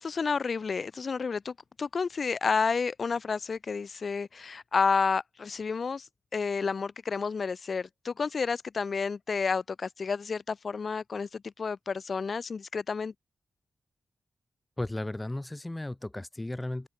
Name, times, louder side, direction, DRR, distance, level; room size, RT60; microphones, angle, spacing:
voice 1, 0.0-13.1, left 5 dB, 55° left, 1.3 m, -30 dB
voice 2, 14.8-16.9, left 1 dB, 15° left, 1.6 m, -35 dB
open air
wide cardioid pair, 100°, 0 cm